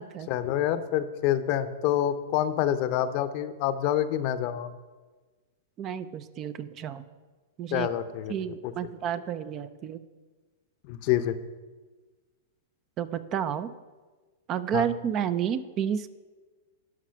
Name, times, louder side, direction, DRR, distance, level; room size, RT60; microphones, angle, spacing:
voice 1, 0.3-4.7 7.7-8.3 8.6-8.7 10.9-11.4 14.7-14.9, left 11 dB, 50° left, 11 dB, 0.7 m, -27 dB
voice 2, 5.8-7.0 7.6-7.9 8.3-10.0 13.0-13.7 14.5-16.1, right 9 dB, 35° right, 14 dB, 0.5 m, -31 dB
11.5 x 4.9 x 5.7 m, 1.3 s
hypercardioid pair, 110°, 0 cm